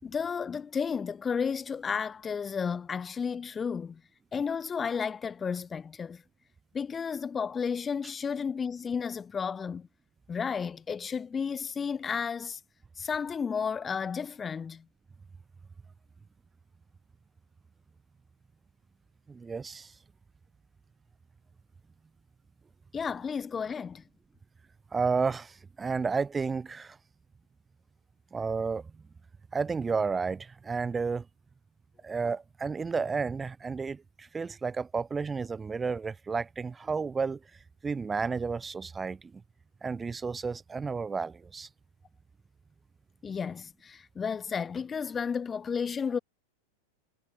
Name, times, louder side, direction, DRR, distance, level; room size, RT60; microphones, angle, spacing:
voice 1, 0.0-4.0 4.3-6.2 6.7-9.9 10.3-12.6 13.0-14.9 22.9-24.0 43.2-46.2, left 6 dB, 20° left, 4.2 m, -32 dB
voice 2, 19.3-19.9 24.9-27.0 28.3-28.8 29.5-31.2 32.0-37.4 37.8-39.4 39.8-41.7, right 5 dB, 15° right, 1.7 m, -32 dB
figure-of-eight pair, 90°, 0 cm